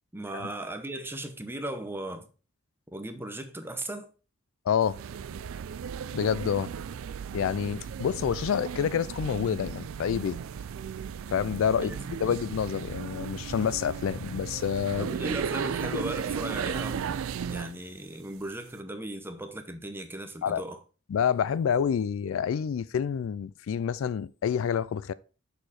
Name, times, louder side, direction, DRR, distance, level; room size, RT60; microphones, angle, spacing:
voice 1, 0.1-2.3 2.9-4.1 11.8-12.4 15.0-20.8, right 1 dB, 10° right, 0.8 m, -37 dB
voice 2, 4.7-5.0 6.1-6.7 7.3-10.4 11.3-11.9 12.2-15.1 15.9-16.0 20.4-20.6 21.1-25.1, left 7 dB, 70° left, 0.3 m, -28 dB
sound 1, 4.8-17.8, right 7 dB, 70° right, 0.4 m, -35 dB
6.5 x 4.8 x 4.2 m
head